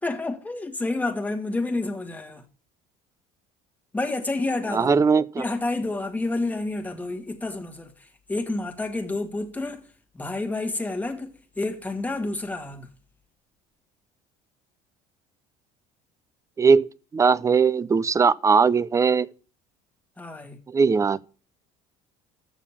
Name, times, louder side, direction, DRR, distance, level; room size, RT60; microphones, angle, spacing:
voice 1, 0.0-2.5 3.9-5.0 5.3-12.9 20.2-20.6, left 2 dB, 10° left, 1.5 m, -29 dB
voice 2, 4.7-5.2 16.6-19.3 20.7-21.2, right 5 dB, 20° right, 0.5 m, -19 dB
7.2 x 6.5 x 7.1 m
supercardioid pair, 110°, 16 cm